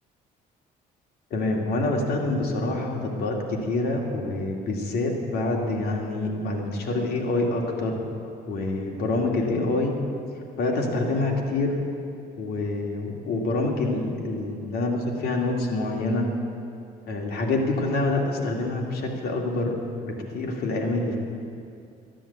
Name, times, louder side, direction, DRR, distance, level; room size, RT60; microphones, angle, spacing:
voice 1, 1.3-9.9 10.6-11.8 12.4-16.3 17.1-21.2, left 2 dB, 65° left, 0 dB, 2.4 m, -26 dB
13.0 x 10.0 x 8.2 m, 2.5 s
cardioid pair, 110°, 17 cm